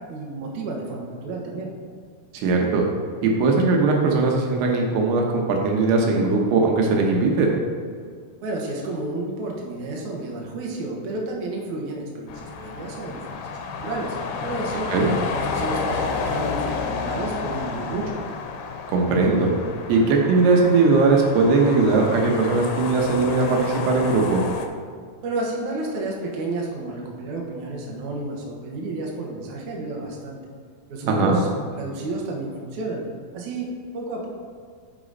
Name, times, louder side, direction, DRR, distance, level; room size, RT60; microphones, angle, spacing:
voice 1, 0.1-1.7 8.4-14.9 15.3-18.1 25.2-30.4 30.9-31.5 31.7-33.0 33.3-34.3, right 2 dB, 65° right, -1 dB, 2.1 m, -31 dB
voice 2, 2.3-2.8 3.2-7.5 14.9-15.1 18.9-19.5 19.9-24.4 31.1-31.4, right 3 dB, 80° right, 0 dB, 3.0 m, -19 dB
sound 1, 12.3-24.7, left 5 dB, 90° left, 2.7 m, -31 dB
9.6 x 5.0 x 4.1 m, 2.1 s
omnidirectional pair, 4.6 m